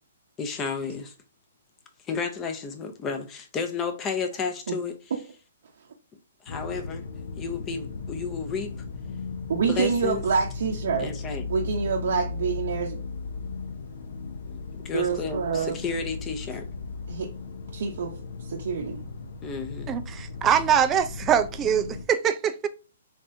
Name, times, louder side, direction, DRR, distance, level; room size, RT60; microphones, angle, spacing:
voice 1, 0.4-1.1 2.1-5.0 6.5-7.0 7.4-8.7 9.7-10.2 11.0-11.5 14.5-14.6 14.8-16.7 19.4-19.9, left 5 dB, 20° left, 0.7 m, -32 dB
sound 1, 6.5-22.1, left 4 dB, 65° left, 0.5 m, -36 dB
voice 2, 9.5-11.2 11.5-13.0 14.9-15.7 17.1-17.3 17.7-18.1 18.4-19.1, right 6 dB, 65° right, 0.7 m, -27 dB
voice 3, 19.9-22.7, right 8 dB, 20° right, 0.4 m, -23 dB
3.3 x 3.3 x 2.6 m
hypercardioid pair, 135°, 0 cm